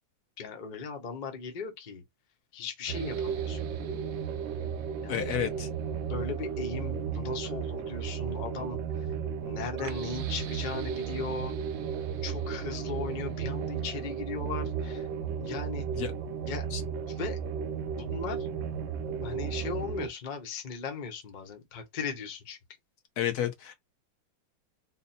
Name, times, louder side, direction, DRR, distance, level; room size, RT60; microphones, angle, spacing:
voice 1, 0.4-2.0 2.5-3.6 5.0-5.4 6.1-8.8 9.4-11.5 12.2-15.1 15.4-15.8 16.5-16.7 17.2-17.4 18.0-18.5 19.2-22.6, left 5 dB, 85° left, 0.4 m, -38 dB
sound 1, 2.9-20.1, right 7 dB, 70° right, 1.3 m, -34 dB
voice 2, 5.1-5.7 15.9-16.1 16.7-16.8 23.2-23.7, left 10 dB, 60° left, 1.1 m, -31 dB
4.1 x 2.1 x 4.1 m
omnidirectional pair, 2.2 m